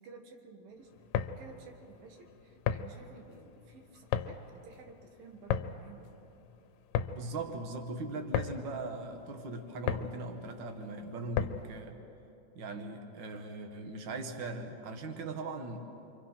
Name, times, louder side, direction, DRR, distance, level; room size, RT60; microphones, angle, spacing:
voice 1, 0.0-6.1, right 4 dB, 80° right, 4 dB, 3.5 m, -54 dB
sound 1, 0.9-11.8, left 9 dB, 80° left, 2.3 m, -36 dB
voice 2, 7.1-12.0 12.5-15.8, right 2 dB, 45° right, 5 dB, 1.6 m, -40 dB
28.5 x 24.5 x 5.8 m, 2.9 s
omnidirectional pair, 4.1 m